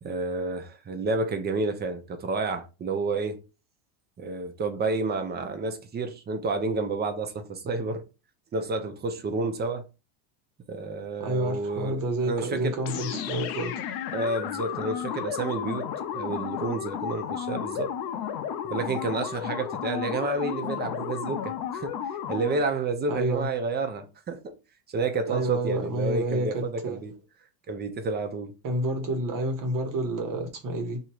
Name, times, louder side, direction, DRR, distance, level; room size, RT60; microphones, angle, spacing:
voice 1, 0.0-3.4 4.2-8.0 8.5-9.9 10.7-13.2 14.1-17.9 18.7-24.6 24.9-27.1 27.7-28.5, right 3 dB, 20° right, 0.7 m, -30 dB
voice 2, 11.2-13.7 23.1-23.5 25.3-27.0 28.6-31.0, right 1 dB, 40° right, 1.3 m, -29 dB
sound 1, 12.8-22.7, left 9 dB, 50° left, 0.6 m, -33 dB
3.0 x 2.7 x 4.4 m
supercardioid pair, 125°, 48 cm